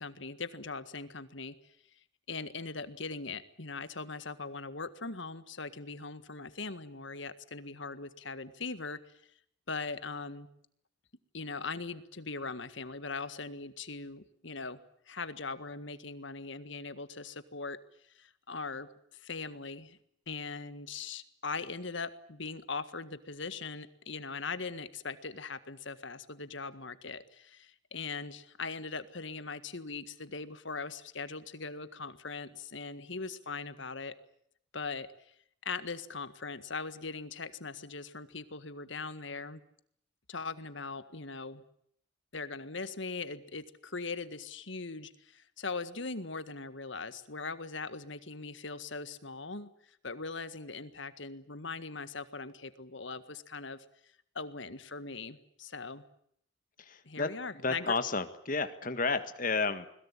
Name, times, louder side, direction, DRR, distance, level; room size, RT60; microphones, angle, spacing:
voice 1, 0.0-1.7 2.3-9.0 9.7-10.5 11.3-14.8 15.1-17.8 18.1-20.0 20.3-34.1 34.7-35.3 35.6-39.6 40.3-41.6 42.3-53.8 54.4-56.0 57.1-58.0, left 4 dB, 65° left, 12 dB, 1.7 m, -40 dB
voice 2, 56.8-57.3 57.5-59.9, left 4 dB, 40° left, 10 dB, 1.8 m, -31 dB
21.5 x 21.5 x 9.9 m, 0.69 s
head